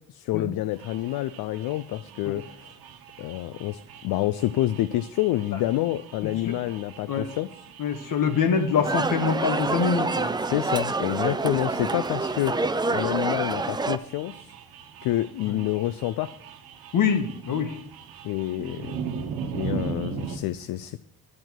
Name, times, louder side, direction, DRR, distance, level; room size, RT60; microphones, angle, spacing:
voice 1, 0.1-2.7 3.2-7.5 10.4-12.5 12.9-14.5 15.0-16.3 18.2-19.0 19.5-21.0, left 15 dB, 80° left, 13 dB, 0.5 m, -28 dB
sound 1, 0.7-20.4, right 6 dB, 80° right, 1.1 m, -40 dB
voice 2, 7.8-10.3 15.4-15.6 16.9-17.7, left 6 dB, 60° left, 7 dB, 1.5 m, -24 dB
sound 2, 8.8-14.0, right 3 dB, 10° right, 0.4 m, -27 dB
9.6 x 7.9 x 4.5 m, 0.71 s
cardioid pair, 95°, 36 cm